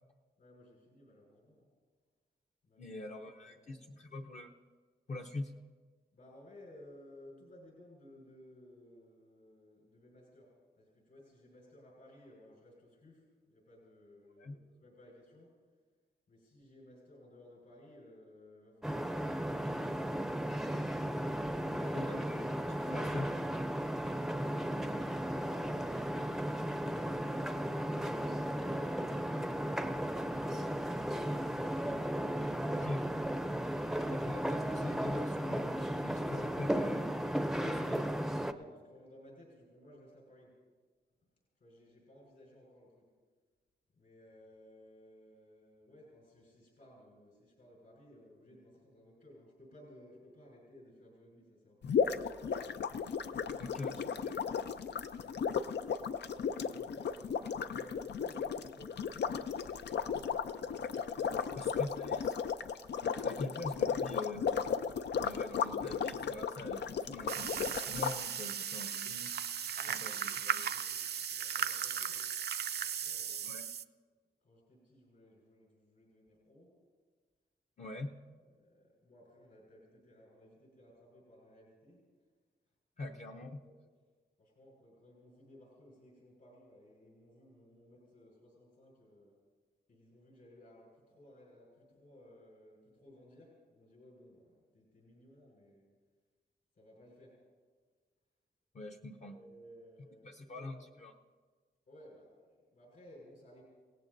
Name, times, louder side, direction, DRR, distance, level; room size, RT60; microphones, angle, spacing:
voice 1, 0.4-1.7 2.6-3.0 3.4-4.0 6.1-15.6 16.3-20.6 21.6-22.1 24.2-26.1 37.6-40.6 41.6-43.1 43.9-52.3 55.1-60.2 61.2-61.6 69.7-72.3 72.8-73.5 74.4-76.8 78.4-82.1 83.0-83.8 84.4-89.4 89.9-95.9 96.7-97.4 99.2-100.7 101.9-103.6, left 1 dB, 65° left, -4 dB, 5.1 m, -58 dB
voice 2, 2.8-4.5 5.1-5.5 14.4-14.6 21.9-23.3 32.7-33.0 34.1-37.1 37.6-38.0 53.6-54.6 61.6-62.4 63.2-64.5 65.2-69.3 69.9-70.6 73.4-73.7 77.8-78.2 83.0-83.6 98.7-99.4 100.2-101.1, left 2 dB, 40° left, 2 dB, 0.7 m, -43 dB
sound 1, 18.8-38.5, equal, ahead, 0.5 m, -35 dB
sound 2, 51.8-68.2, left 6 dB, 90° left, 0.6 m, -35 dB
sound 3, 67.3-73.8, right 8 dB, 70° right, 0.5 m, -37 dB
28.5 x 17.5 x 2.6 m, 1.5 s
wide cardioid pair, 170°, 17 cm